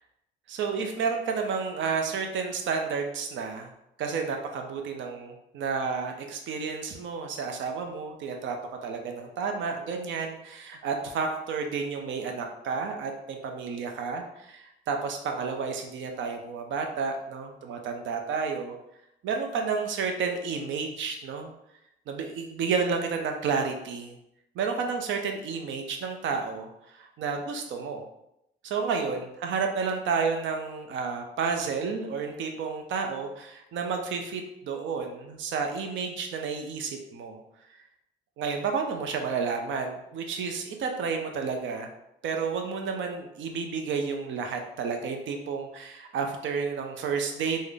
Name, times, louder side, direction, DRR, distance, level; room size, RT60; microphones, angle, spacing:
voice 1, 0.5-3.7 4.0-8.6 8.8-18.7 19.2-21.5 22.1-24.2 24.6-28.0 28.6-37.4 38.4-41.9 42.2-47.6, right 5 dB, 70° right, 4 dB, 0.5 m, -31 dB
3.7 x 2.1 x 3.3 m, 0.82 s
cardioid pair, 90°, 20 cm